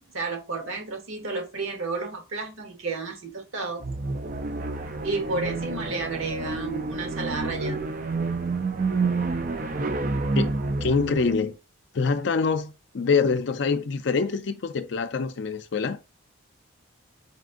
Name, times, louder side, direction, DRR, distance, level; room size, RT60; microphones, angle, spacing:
voice 1, 0.0-3.8 5.0-7.8, right 3 dB, 85° right, 1.2 m, -32 dB
sound 1, 3.8-11.5, right 3 dB, 40° right, 0.5 m, -29 dB
voice 2, 10.4-11.6 11.9-16.0, left 5 dB, 60° left, 0.4 m, -25 dB
4.2 x 2.5 x 3.7 m
head